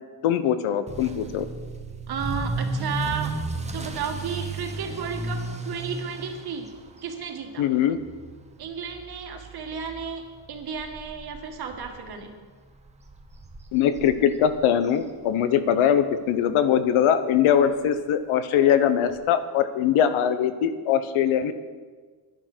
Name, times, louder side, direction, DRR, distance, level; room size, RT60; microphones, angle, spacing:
voice 1, 0.2-1.5 7.6-8.0 13.7-21.5, left 9 dB, 80° left, 12 dB, 1.0 m, -22 dB
Motor vehicle (road) / Accelerating revving vroom, 0.9-15.7 16.0-16.4 16.9-17.0 17.3-17.4 17.7-17.8 19.1-19.2, right 2 dB, 15° right, 0.9 m, -35 dB
voice 2, 2.1-3.4 3.7-6.7 7.0-7.7 8.6-12.3, right 6 dB, 50° right, 4 dB, 1.8 m, -33 dB
11.0 x 11.0 x 6.2 m, 1.5 s
cardioid pair, 160°, 48 cm